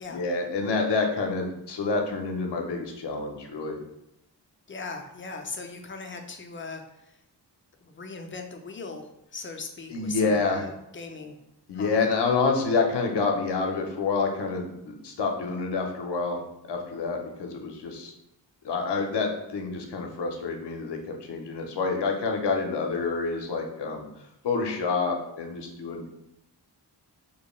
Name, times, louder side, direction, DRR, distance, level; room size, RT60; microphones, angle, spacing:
voice 1, 0.1-3.8 9.9-10.7 11.7-16.4 16.7-18.1 18.6-24.0 24.4-26.1, left 4 dB, 70° left, 3 dB, 0.6 m, -28 dB
voice 2, 4.7-7.2 7.8-11.4 11.7-12.1, left 4 dB, 30° left, 4 dB, 0.4 m, -39 dB
2.8 x 2.1 x 3.0 m, 0.82 s
cardioid pair, 50°, 43 cm